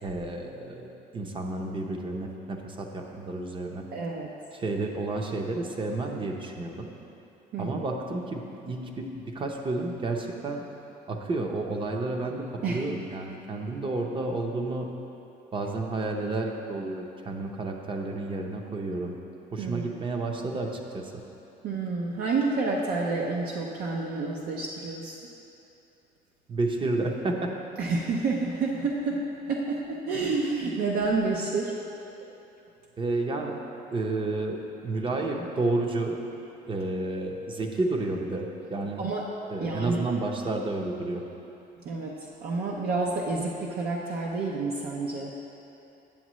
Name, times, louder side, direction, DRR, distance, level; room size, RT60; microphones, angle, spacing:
voice 1, 0.0-0.9 1.1-3.8 4.5-6.9 7.6-10.6 11.1-14.9 15.5-19.2 19.5-21.2 26.5-27.5 33.0-33.5 33.9-36.1 36.6-39.1 39.5-41.2, right 2 dB, 30° right, 2 dB, 0.7 m, -31 dB
voice 2, 3.9-4.3 7.5-7.7 12.6-12.8 19.6-19.9 21.6-25.3 27.8-31.8 39.0-39.3 39.6-40.1 41.8-45.3, right 3 dB, 65° right, -2 dB, 0.7 m, -29 dB
8.7 x 7.1 x 3.1 m, 2.9 s
cardioid pair, 110°, 17 cm